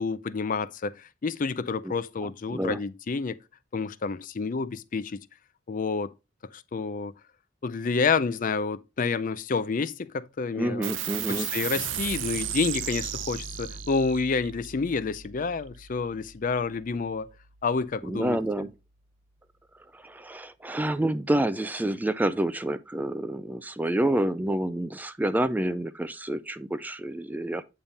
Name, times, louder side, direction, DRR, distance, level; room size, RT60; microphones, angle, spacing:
voice 1, 0.0-3.4 3.7-5.2 5.7-6.1 6.5-7.1 7.6-10.9 11.3-17.3 17.6-18.7, left 4 dB, 45° left, 0.5 m, -29 dB
voice 2, 2.2-2.8 10.5-11.5 18.0-18.7 19.9-27.6, right 1 dB, 10° right, 0.3 m, -28 dB
sound 1, 10.8-17.7, right 9 dB, 90° right, 0.6 m, -36 dB
8.7 x 3.6 x 4.0 m
head